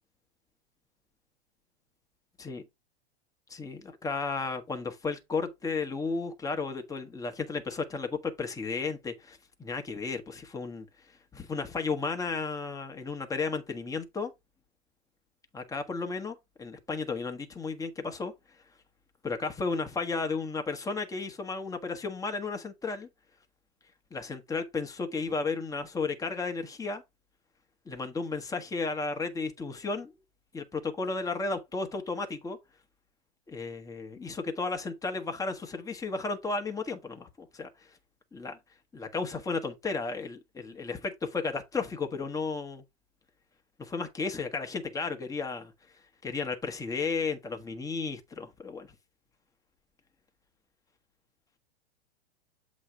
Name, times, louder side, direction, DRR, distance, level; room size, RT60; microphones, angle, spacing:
voice 1, 3.5-10.9 11.3-14.3 15.5-18.3 19.2-23.1 24.1-27.0 27.9-30.1 30.5-32.6 33.5-37.7 38.3-38.6 38.9-41.0 41.5-42.8 43.8-45.7 46.2-48.9, left 4 dB, 10° left, 1.3 m, -33 dB
7.7 x 3.1 x 4.9 m
hypercardioid pair, 110°, 32 cm